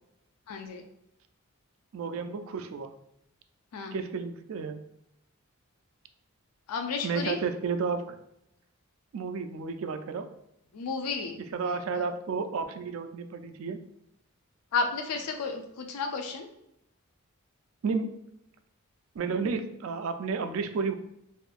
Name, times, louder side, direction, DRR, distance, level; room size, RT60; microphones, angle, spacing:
voice 1, 0.5-0.8 3.7-3.9 6.7-7.4 10.7-11.4 14.7-16.5, left 4 dB, 90° left, 5 dB, 0.4 m, -32 dB
voice 2, 1.9-2.9 3.9-4.8 7.0-8.2 9.1-10.3 11.4-13.8 17.8-18.1 19.1-20.9, right 5 dB, 65° right, 8 dB, 0.3 m, -32 dB
3.5 x 2.6 x 2.4 m, 0.80 s
head